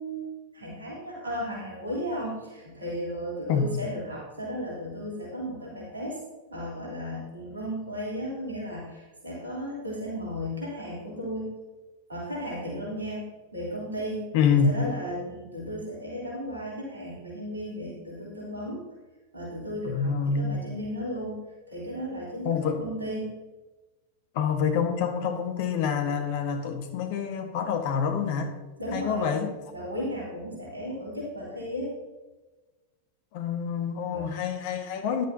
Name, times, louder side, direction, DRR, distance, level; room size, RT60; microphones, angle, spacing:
voice 1, 0.0-6.2 6.5-11.5 12.1-13.3 13.5-18.8 19.3-21.4 21.7-23.3 28.8-29.4 29.7-31.9 34.1-34.3, equal, 80° right, -5 dB, 3.4 m, -35 dB
voice 2, 14.3-14.8 19.8-20.6 22.4-22.8 24.3-28.5 28.9-29.5 33.3-35.2, left 6 dB, 50° left, 5 dB, 1.5 m, -27 dB
14.0 x 11.0 x 2.8 m, 1.2 s
figure-of-eight pair, 90°, 0 cm